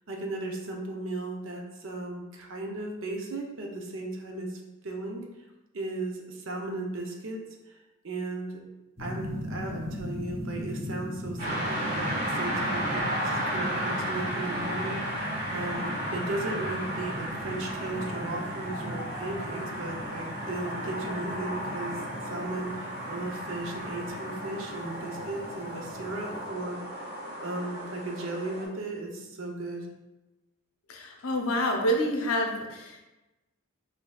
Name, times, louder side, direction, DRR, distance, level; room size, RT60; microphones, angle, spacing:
voice 1, 0.1-5.3 5.7-7.4 7.7-7.8 8.0-8.6 9.0-27.1 27.4-29.9, right 2 dB, 60° right, 1 dB, 0.6 m, -36 dB
sound 1, 9.0-26.5, left 1 dB, 15° right, 0.7 m, -40 dB
sound 2, 11.4-28.7, right 1 dB, 35° right, 1.3 m, -34 dB
voice 2, 30.9-33.0, equal, 75° left, 1 dB, 0.6 m, -28 dB
5.1 x 2.7 x 2.3 m, 1.0 s
head